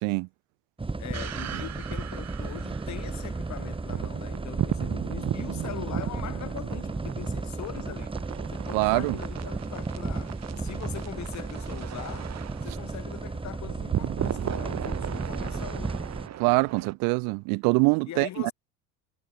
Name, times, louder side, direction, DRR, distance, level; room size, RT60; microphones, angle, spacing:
sound 1, 0.8-16.3, right 3 dB, 15° right, 3.7 m, -34 dB
voice 1, 1.0-8.1 8.5-12.3 12.6-16.0 18.1-18.5, left 12 dB, 50° left, 3.6 m, -41 dB
sound 2, 1.1-16.9, right 11 dB, 50° right, 5.7 m, -36 dB
voice 2, 8.7-9.2 16.4-18.5, right 32 dB, 70° right, 0.5 m, -24 dB
supercardioid pair, 100°, 35 cm